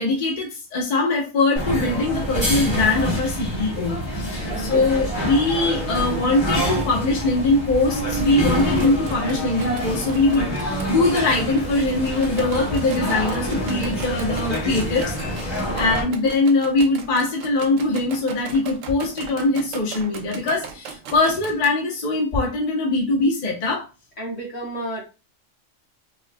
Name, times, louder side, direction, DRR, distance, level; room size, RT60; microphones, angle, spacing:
voice 1, 0.0-23.9, left 2 dB, 40° left, -1 dB, 1.0 m, -22 dB
sound 1, 1.6-16.0, equal, 20° left, 1.6 m, -26 dB
voice 2, 4.5-4.9 15.7-16.0 24.2-25.1, right 1 dB, 70° left, -4 dB, 2.0 m, -33 dB
sound 2, 8.5-21.7, right 6 dB, 80° right, 1.0 m, -39 dB
4.8 x 2.8 x 2.2 m, 0.30 s
omnidirectional pair, 1.3 m